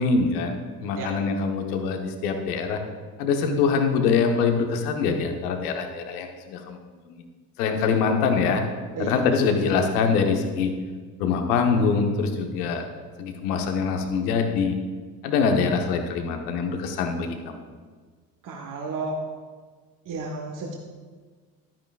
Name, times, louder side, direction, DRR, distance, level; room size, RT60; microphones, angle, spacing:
voice 1, 0.0-2.8 3.2-6.8 7.1-7.2 7.6-8.6 9.0-10.7 11.2-12.8 13.2-14.7 15.2-17.6, left 5 dB, 65° left, 5 dB, 1.3 m, -24 dB
voice 2, 18.4-19.2 20.0-20.7, right 3 dB, 40° right, 1 dB, 1.4 m, -32 dB
12.0 x 9.1 x 2.5 m, 1.5 s
figure-of-eight pair, 55°, 48 cm